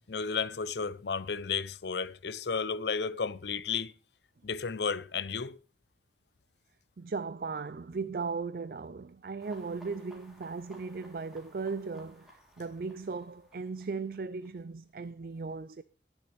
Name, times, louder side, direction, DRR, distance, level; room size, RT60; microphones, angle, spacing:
voice 1, 0.0-3.9 4.4-5.6, left 5 dB, 75° left, 0.6 m, -33 dB
voice 2, 7.0-15.8, right 4 dB, 55° right, 0.4 m, -37 dB
sound 1, 9.4-14.5, equal, ahead, 3.3 m, -58 dB
19.5 x 7.2 x 3.3 m
head